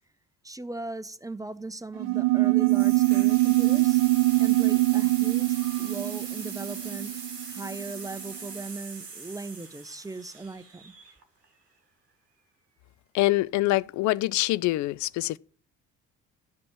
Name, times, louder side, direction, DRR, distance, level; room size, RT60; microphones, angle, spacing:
voice 1, 0.4-4.0 4.4-7.1 7.5-10.9, right 3 dB, 5° right, 0.7 m, -38 dB
sound 1, 2.0-7.9, right 22 dB, 45° right, 0.8 m, -23 dB
sound 2, 2.6-11.4, right 4 dB, 90° right, 1.0 m, -41 dB
voice 2, 13.1-15.4, left 18 dB, 40° left, 0.4 m, -25 dB
12.0 x 5.1 x 7.1 m
figure-of-eight pair, 45°, 47 cm